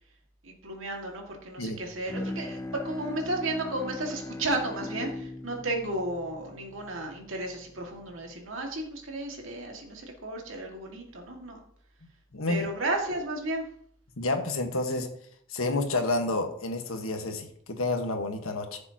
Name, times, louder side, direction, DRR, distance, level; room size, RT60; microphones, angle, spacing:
voice 1, 0.4-11.6 12.5-13.7, right 2 dB, 70° right, 1 dB, 2.0 m, -33 dB
Bowed string instrument, 2.1-7.5, left 2 dB, 15° left, 0.4 m, -39 dB
voice 2, 12.3-12.7 14.2-15.1 15.5-18.8, left 2 dB, 80° left, 5 dB, 1.4 m, -29 dB
14.5 x 6.9 x 2.9 m, 0.66 s
head